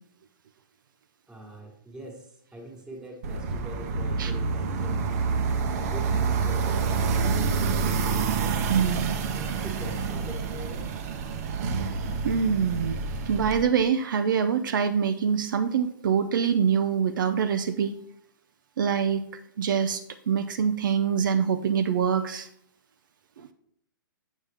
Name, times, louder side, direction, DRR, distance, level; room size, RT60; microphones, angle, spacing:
voice 1, 1.3-5.2 5.7-7.6 8.4-10.9, equal, 5° right, 0 dB, 1.5 m, -43 dB
sound 1, 3.2-13.6, right 5 dB, 45° right, 0.9 m, -28 dB
voice 2, 8.7-9.2 12.2-13.0 13.3-17.9 18.8-19.2 19.6-22.5 23.4-23.5, right 7 dB, 60° right, 9 dB, 0.5 m, -25 dB
7.3 x 7.1 x 3.4 m, 0.69 s
hypercardioid pair, 135°, 12 cm